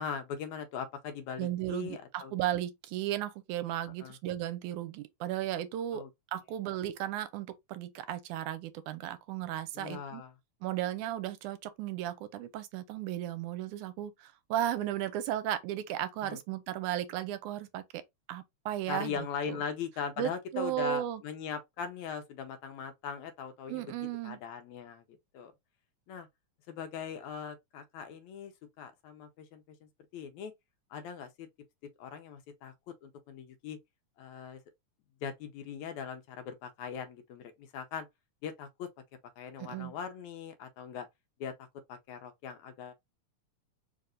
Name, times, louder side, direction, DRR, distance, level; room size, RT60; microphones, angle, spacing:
voice 1, 0.0-2.3 4.0-4.2 5.9-6.1 9.8-10.3 16.2-16.4 18.9-23.8 24.2-25.0 25.3-25.5 26.1-26.3 26.7-29.6 30.1-30.5 30.9-31.5 32.0-32.7 33.0-33.8 34.2-34.6 35.2-38.1 38.4-38.9 39.4-41.1 41.4-42.9, left 7 dB, 75° left, 2.0 m, -40 dB
voice 2, 1.4-6.0 6.3-10.2 10.6-18.0 18.3-19.6 20.2-21.2 23.7-24.4 39.6-39.9, right 12 dB, 80° right, 2.0 m, -35 dB
4.8 x 2.6 x 3.7 m
omnidirectional pair, 3.5 m